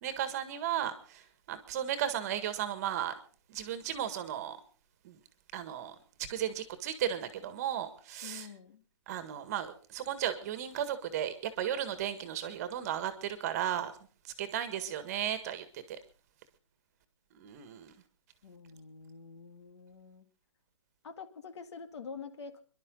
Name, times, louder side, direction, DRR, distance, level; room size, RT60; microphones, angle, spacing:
voice 1, 0.0-1.2 1.5-3.1 3.5-4.6 5.0-5.2 5.5-5.9 6.3-8.5 9.1-13.9 14.4-16.0 17.3-17.9, right 10 dB, 30° right, 11 dB, 1.7 m, -35 dB
voice 2, 8.2-8.8 18.4-20.3 21.0-22.6, left 5 dB, 60° left, 9 dB, 2.1 m, -47 dB
26.0 x 11.5 x 3.9 m, 0.40 s
hypercardioid pair, 165°, 16 cm